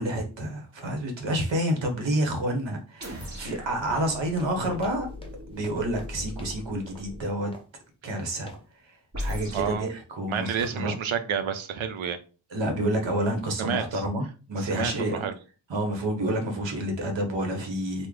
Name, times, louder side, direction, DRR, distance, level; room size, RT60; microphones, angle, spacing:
voice 1, 0.0-5.1 5.5-7.5 8.0-8.5 8.9-10.9 12.5-15.3 15.7-18.1, right 1 dB, 65° right, 4 dB, 1.1 m, -29 dB
sound 1, 3.0-7.3 9.1-9.8, left 1 dB, 35° right, 1.3 m, -38 dB
sound 2, 3.2-6.6 6.9-7.1 7.5-7.8 8.5-8.7, left 1 dB, 10° left, 0.7 m, -49 dB
voice 2, 9.5-9.9 10.3-12.2 13.6-14.0 14.6-15.3, right 7 dB, 85° right, 9 dB, 0.6 m, -30 dB
3.2 x 2.1 x 3.7 m, 0.35 s
wide cardioid pair, 90°, 47 cm